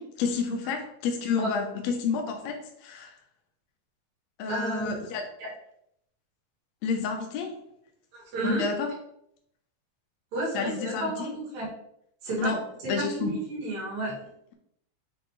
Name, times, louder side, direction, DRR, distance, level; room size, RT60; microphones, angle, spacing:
voice 1, 0.0-3.1 4.4-5.2 6.8-7.6 8.4-8.9 10.5-11.3 12.4-12.6 12.9-13.4, left 5 dB, 65° left, 3 dB, 1.8 m, -30 dB
voice 2, 4.5-4.9 8.1-8.7 10.3-11.7 12.2-12.5 12.8-14.1, right 1 dB, 75° right, -6 dB, 4.2 m, -31 dB
8.4 x 3.5 x 3.3 m, 0.74 s
omnidirectional pair, 4.1 m